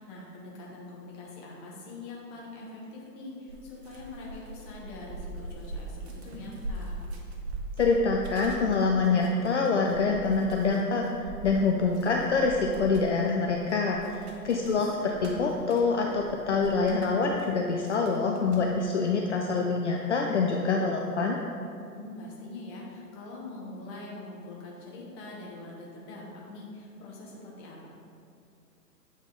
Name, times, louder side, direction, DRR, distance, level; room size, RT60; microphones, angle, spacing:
voice 1, 0.0-7.0 14.5-14.9 21.9-27.9, left 2 dB, 15° left, -4 dB, 0.7 m, -43 dB
sound 1, 3.5-17.5 17.9-18.6, right 2 dB, 40° right, 0.9 m, -41 dB
voice 2, 7.8-21.4, left 4 dB, 50° left, 0 dB, 0.5 m, -26 dB
8.3 x 3.5 x 3.7 m, 2.4 s
hypercardioid pair, 140°, 48 cm